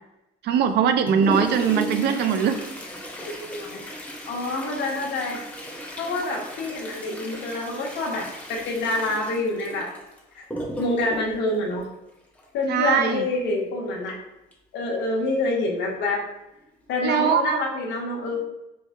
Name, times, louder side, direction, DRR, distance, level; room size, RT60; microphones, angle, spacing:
voice 1, 0.4-2.5 12.7-13.3 17.0-17.6, right 7 dB, 65° right, 8 dB, 0.4 m, -21 dB
Toilet flush, 0.7-12.6 14.5-14.6 14.9-15.0 15.8-15.9 16.6-16.8 17.3-17.4, equal, 10° left, 0.7 m, -35 dB
voice 2, 3.2-3.8 4.3-5.4 6.0-9.9 10.3-10.4 10.8-11.9 12.5-14.1 14.7-16.2 16.9-18.4, left 2 dB, 75° left, -1 dB, 1.1 m, -27 dB
4.7 x 2.1 x 3.6 m, 0.90 s
cardioid pair, 165°, 19 cm